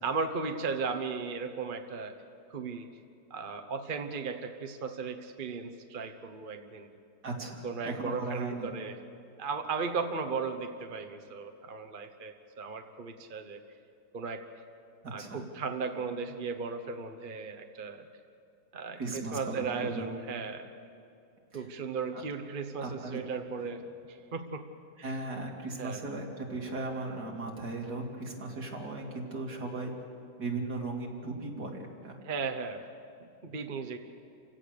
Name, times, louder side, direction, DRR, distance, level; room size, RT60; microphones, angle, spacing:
voice 1, 0.0-2.1 2.5-2.9 3.3-6.9 7.6-9.0 9.4-13.6 14.1-14.4 15.1-18.0 18.7-20.7 21.5-24.6 25.0-25.1 25.8-26.0 32.2-32.9 33.2-34.0, right 5 dB, 35° right, 6 dB, 0.9 m, -36 dB
voice 2, 7.2-8.7 15.0-15.4 19.0-20.1 21.5-21.6 22.1-22.2 22.8-23.2 23.6-23.7 25.0-29.9 30.4-32.2, right 2 dB, 65° right, -1 dB, 3.2 m, -37 dB
29.0 x 16.5 x 6.7 m, 2.6 s
omnidirectional pair, 1.8 m